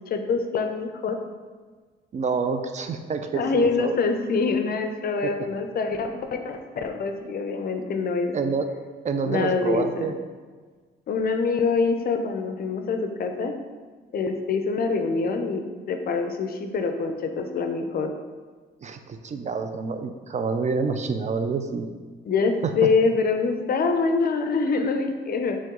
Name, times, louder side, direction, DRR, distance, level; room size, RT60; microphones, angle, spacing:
voice 1, 0.1-1.2 3.3-8.4 9.2-10.1 11.1-13.5 14.1-18.1 22.2-25.6, left 4 dB, 50° left, 6 dB, 0.5 m, -25 dB
voice 2, 2.1-4.0 8.3-8.7 9.0-10.1 18.8-21.9, right 5 dB, 35° right, 7 dB, 0.4 m, -27 dB
4.5 x 3.0 x 3.7 m, 1.5 s
cardioid pair, 90°, 20 cm